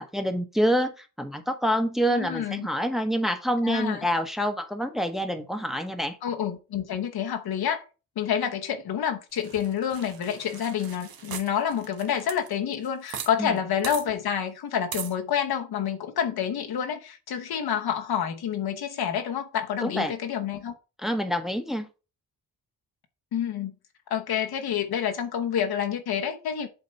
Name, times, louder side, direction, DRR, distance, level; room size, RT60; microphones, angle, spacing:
voice 1, 0.0-6.2 13.4-13.6 19.8-20.1 21.0-21.9, equal, ahead, 1.0 m, -27 dB
voice 2, 2.1-2.7 3.6-4.0 6.2-7.8 8.2-20.7 23.3-23.7 24.1-26.7, left 8 dB, 80° left, 1.2 m, -28 dB
sound 1, 9.4-13.3 13.6-13.7 13.8-14.0 14.9-15.1, right 8 dB, 70° right, 1.1 m, -39 dB
8.0 x 2.9 x 5.6 m
cardioid pair, 80°, 37 cm